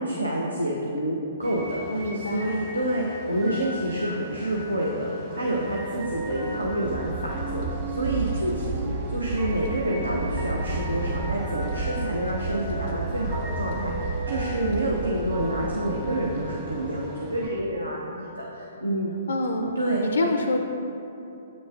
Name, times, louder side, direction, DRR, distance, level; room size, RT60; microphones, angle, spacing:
voice 1, 0.0-19.1 19.8-20.3, right 1 dB, 85° right, -3 dB, 0.6 m, -28 dB
sound 1, 1.4-17.5, right 1 dB, 25° right, 1.2 m, -37 dB
voice 2, 1.9-2.7 3.4-3.8 19.3-19.8 20.1-20.6, left 2 dB, 70° left, 5 dB, 0.4 m, -27 dB
sound 2, 5.8-16.8, right 3 dB, 45° right, 0.5 m, -32 dB
8.2 x 6.2 x 2.4 m, 2.9 s
figure-of-eight pair, 120°, 0 cm